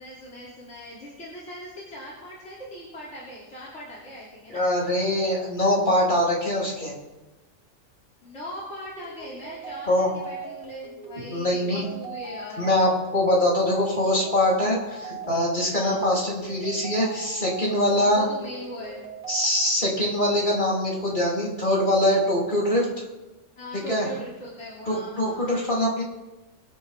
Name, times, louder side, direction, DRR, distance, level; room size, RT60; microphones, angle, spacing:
voice 1, 0.0-4.6 8.2-12.9 15.7-16.0 17.9-19.1 23.6-25.7, equal, 60° left, -6 dB, 3.5 m, -40 dB
voice 2, 4.5-6.9 9.9-10.1 11.3-11.8 12.6-18.3 19.3-22.9 23.7-24.1 24.9-26.0, left 1 dB, 40° left, -5 dB, 3.8 m, -23 dB
sound 1, 8.9-19.5, right 4 dB, 60° right, 5.0 m, -40 dB
24.0 x 9.8 x 3.7 m, 1.1 s
omnidirectional pair, 1.3 m